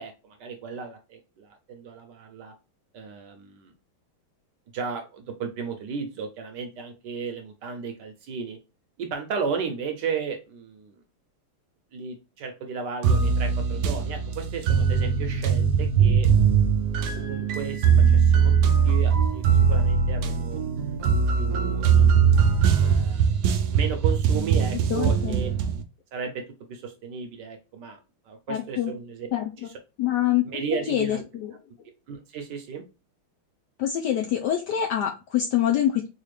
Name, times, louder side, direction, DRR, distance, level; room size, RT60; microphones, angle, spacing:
voice 1, 0.0-2.5 2.9-3.7 4.7-8.6 9.0-10.9 11.9-16.6 17.2-20.6 21.1-22.3 22.8-25.5 26.1-26.4 26.7-28.0 28.3-29.3 29.6-29.7 30.5-31.2 32.1-32.8, right 5 dB, 70° right, 4 dB, 1.1 m, -34 dB
sound 1, 13.0-25.8, right 6 dB, 85° right, 0.9 m, -21 dB
voice 2, 24.9-25.4 28.5-28.9 29.3-29.5 30.0-30.6 30.9-31.5 33.8-36.1, left 11 dB, 75° left, 2 dB, 1.0 m, -25 dB
4.1 x 2.4 x 3.1 m, 0.29 s
omnidirectional pair, 2.3 m